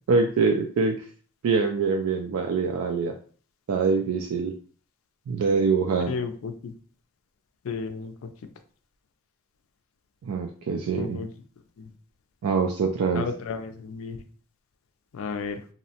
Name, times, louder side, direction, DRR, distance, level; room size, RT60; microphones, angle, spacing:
voice 1, 0.1-1.1 1.4-3.2 3.7-4.5 5.3-6.1 10.2-11.2 12.4-13.3, right 4 dB, 75° right, 4 dB, 0.3 m, -24 dB
voice 2, 6.1-6.7 7.6-8.3 10.9-11.3 11.8-11.9 13.1-14.2 15.1-15.6, left 5 dB, 65° left, 8 dB, 0.4 m, -33 dB
2.7 x 2.0 x 2.7 m, 0.43 s
head